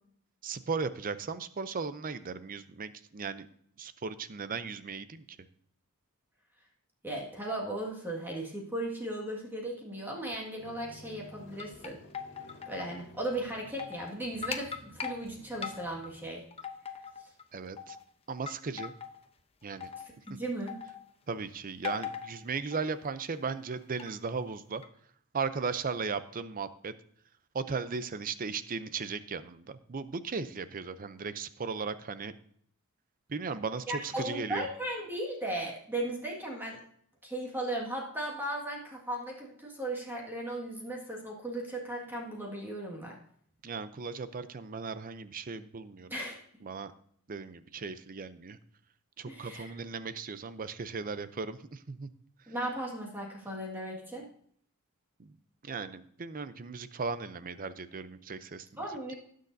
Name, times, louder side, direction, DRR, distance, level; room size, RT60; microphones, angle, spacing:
voice 1, 0.4-3.5 3.8-5.2 17.5-18.0 18.3-18.9 19.6-19.9 20.3-20.4 21.3-24.8 25.3-26.9 27.5-32.3 33.3-34.7 43.6-46.1 46.6-46.9 47.3-48.6 49.2-52.1 55.2-55.3 55.6-58.7, right 5 dB, 40° right, 13 dB, 0.6 m, -37 dB
voice 2, 7.0-12.0 12.7-16.4 20.3-20.8 33.9-36.8 37.2-43.2 46.1-46.4 49.3-49.7 52.5-54.3 58.8-59.1, right 1 dB, 10° right, -2 dB, 1.8 m, -36 dB
sound 1, 10.6-16.5, left 1 dB, 55° left, 1.8 m, -54 dB
sound 2, 11.3-12.9 13.2-13.3 13.6-14.1 14.4-15.2 15.6-16.1 16.5-17.4 17.8-18.0 18.5-19.2 19.7-20.3 20.7-21.1 21.8-22.4 22.7-23.0 23.7-24.1 24.8-24.9, left 7 dB, 25° left, 0.7 m, -40 dB
19.0 x 6.5 x 2.7 m, 0.64 s
head